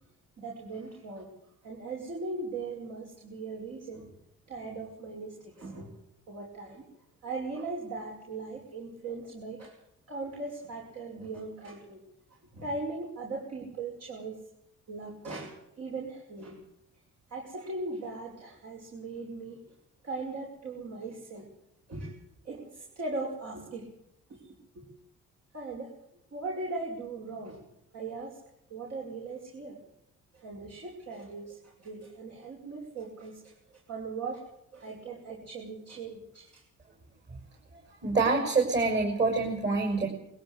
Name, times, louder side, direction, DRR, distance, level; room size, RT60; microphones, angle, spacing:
voice 1, 0.4-1.3 1.6-4.1 4.5-5.9 6.3-6.8 7.2-9.8 10.1-12.0 12.5-14.4 14.9-16.6 17.3-19.6 20.0-21.5 21.9-22.1 22.4-23.9 24.3-24.9 25.5-26.0 26.3-27.6 27.9-28.4 28.7-29.8 30.3-34.4 34.7-36.6, right 3 dB, 55° right, -1 dB, 6.3 m, -39 dB
voice 2, 38.0-40.1, right 3 dB, 35° right, 2 dB, 6.8 m, -26 dB
22.0 x 16.0 x 8.3 m, 0.77 s
cardioid pair, 90°, 30 cm